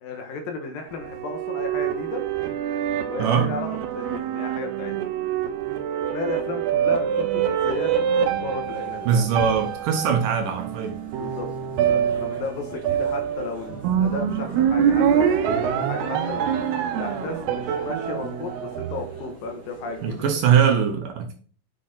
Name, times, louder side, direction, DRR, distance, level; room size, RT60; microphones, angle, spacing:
voice 1, 0.0-2.2 3.0-4.9 6.1-9.3 11.1-11.5 11.9-16.5 16.9-20.3, left 4 dB, 70° left, 4 dB, 2.9 m, -34 dB
sound 1, 0.9-19.5, right 8 dB, 85° right, 3.0 m, -25 dB
sound 2, 8.6-20.4, right 1 dB, 5° right, 2.5 m, -46 dB
voice 2, 9.1-11.0 20.0-21.4, right 7 dB, 65° right, 4 dB, 2.5 m, -21 dB
8.3 x 6.3 x 4.2 m, 0.41 s
omnidirectional pair, 4.5 m